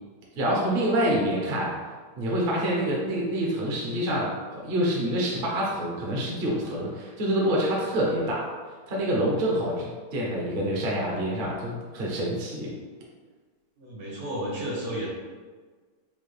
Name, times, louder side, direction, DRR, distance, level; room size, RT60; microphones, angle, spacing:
voice 1, 0.3-1.8 2.2-8.5 8.9-12.7, equal, 45° right, -3 dB, 0.7 m, -27 dB
voice 2, 13.8-15.1, right 1 dB, 65° right, -5 dB, 1.5 m, -32 dB
5.3 x 2.3 x 3.2 m, 1.5 s
omnidirectional pair, 1.8 m